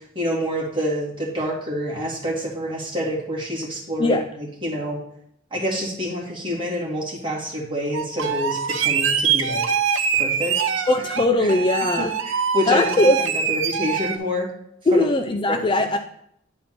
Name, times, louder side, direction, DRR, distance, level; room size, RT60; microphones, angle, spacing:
voice 1, 0.0-5.0 5.5-9.6 10.1-10.6 11.4-11.5 12.0-14.5 14.9-15.0 15.5-15.6, equal, 25° right, -5 dB, 2.3 m, -27 dB
sound 1, 7.9-14.2, right 7 dB, 75° right, 0.7 m, -23 dB
voice 2, 10.9-12.1 12.7-13.2 14.9-16.0, left 2 dB, 25° left, 7 dB, 0.4 m, -19 dB
10.0 x 4.3 x 4.3 m, 0.72 s
head